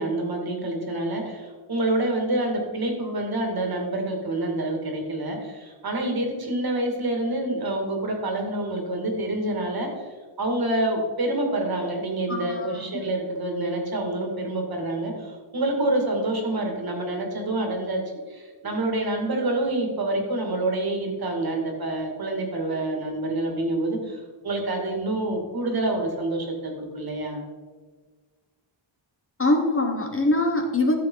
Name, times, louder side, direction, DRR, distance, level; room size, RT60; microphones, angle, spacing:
voice 1, 0.0-10.1 10.4-18.0 18.3-27.4, right 1 dB, 45° right, 2 dB, 2.2 m, -27 dB
voice 2, 12.3-12.7 29.4-31.0, left 2 dB, 25° left, 3 dB, 1.1 m, -23 dB
13.5 x 7.5 x 3.9 m, 1.4 s
wide cardioid pair, 155°, 50 cm